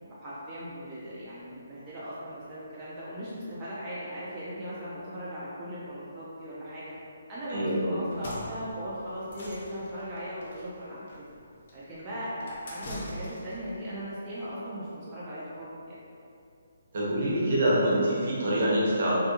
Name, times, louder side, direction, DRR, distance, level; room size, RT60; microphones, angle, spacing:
voice 1, 0.0-6.9 7.3-11.2 11.7-16.0, equal, 20° right, -10 dB, 0.4 m, -38 dB
voice 2, 7.5-8.0 16.9-19.1, right 1 dB, 55° right, -6 dB, 0.8 m, -25 dB
sound 1, 8.0-13.7, left 1 dB, 50° left, 0.5 m, -43 dB
2.5 x 2.1 x 2.7 m, 2.6 s
hypercardioid pair, 155°, 0 cm